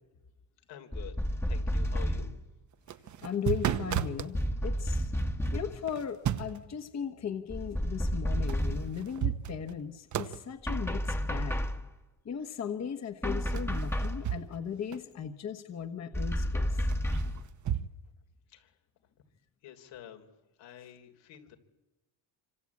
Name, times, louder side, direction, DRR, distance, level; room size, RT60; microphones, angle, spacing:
voice 1, 0.7-2.3 18.5-18.8 19.6-20.3 20.6-21.6, left 10 dB, 80° left, 5 dB, 3.6 m, -49 dB
sound 1, 0.9-2.4 4.3-5.8 7.5-9.0 10.7-11.9 13.2-14.3 16.1-17.5, equal, 5° left, 1.3 m, -31 dB
sound 2, 2.7-4.3 5.9-6.7 8.5-8.6 9.0-9.8 10.1-10.4 13.5-14.7 14.9-15.0 16.9-17.9, right 10 dB, 40° right, 1.0 m, -33 dB
voice 2, 3.2-5.1 5.5-11.6 12.2-16.8, left 7 dB, 40° left, 7 dB, 1.4 m, -37 dB
27.0 x 25.5 x 8.5 m, 1.1 s
cardioid pair, 165°, 43 cm